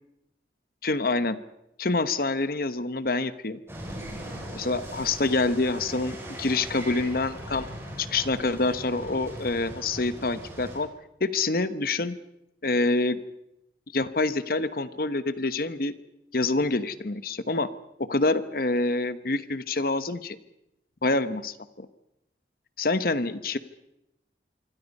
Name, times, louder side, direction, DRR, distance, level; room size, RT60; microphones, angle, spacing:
voice 1, 0.8-1.4 1.8-3.6 4.5-7.7 8.0-10.9 11.2-12.2 12.6-13.2 13.9-15.9 16.3-17.7 18.0-20.4 21.0-21.9 22.8-23.6, left 3 dB, 55° left, 13 dB, 1.1 m, -26 dB
sound 1, 3.7-10.8, right 1 dB, 15° right, 6.7 m, -39 dB
26.0 x 24.5 x 5.5 m, 0.84 s
head